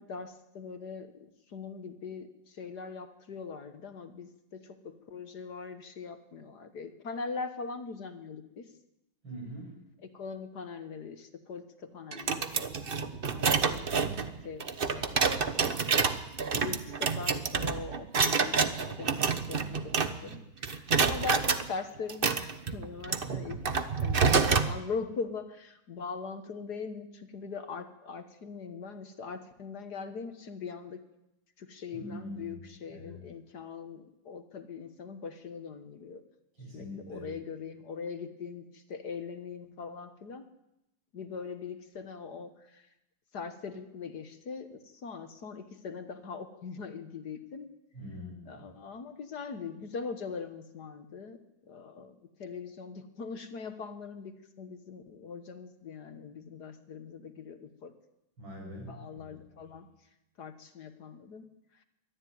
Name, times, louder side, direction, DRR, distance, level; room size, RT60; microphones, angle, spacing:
voice 1, 0.0-8.7 10.0-14.0 14.4-15.8 16.5-23.6 24.0-31.0 31.6-36.2 36.7-40.5 41.1-42.9 43.3-47.7 48.5-51.4 51.7-57.9 58.9-59.9 60.4-61.4 61.7-61.8, left 5 dB, 55° left, 9 dB, 1.8 m, -41 dB
voice 2, 9.2-9.7 23.3-23.5 31.9-32.6 32.9-33.2 36.6-37.3 47.9-48.6 58.4-59.3, right 1 dB, 70° right, 0 dB, 8.1 m, -43 dB
sound 1, 12.1-20.4 20.6-21.6 22.1-24.7, right 5 dB, 35° right, 0.9 m, -28 dB
23.0 x 13.5 x 9.4 m, 0.88 s
omnidirectional pair, 2.2 m